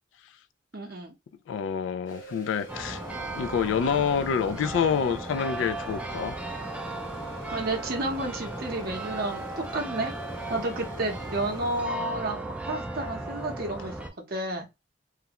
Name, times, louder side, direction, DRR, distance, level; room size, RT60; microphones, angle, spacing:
voice 1, 0.7-1.1 7.4-14.6, right 2 dB, 55° right, 0.7 m, -31 dB
voice 2, 1.5-3.0 3.3-6.3, left 7 dB, 80° left, 0.3 m, -27 dB
sound 1, 2.1-11.8, right 2 dB, 45° left, 1.2 m, -45 dB
sound 2, 2.7-14.1, right 2 dB, 5° right, 0.4 m, -36 dB
2.4 x 2.1 x 2.8 m
head